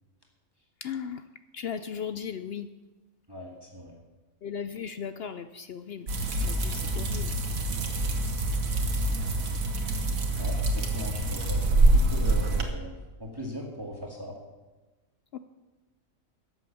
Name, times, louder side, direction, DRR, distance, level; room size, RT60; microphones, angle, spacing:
voice 1, 0.8-1.2 1.5-2.7 4.4-6.1 6.4-7.4 15.3-15.4, left 7 dB, 65° left, 11 dB, 0.6 m, -36 dB
voice 2, 3.3-3.9 10.4-14.3, equal, 15° right, -1 dB, 1.9 m, -39 dB
sound 1, 6.1-12.6, right 2 dB, 75° right, 1.9 m, -26 dB
13.0 x 8.2 x 7.0 m, 1.2 s
omnidirectional pair, 1.4 m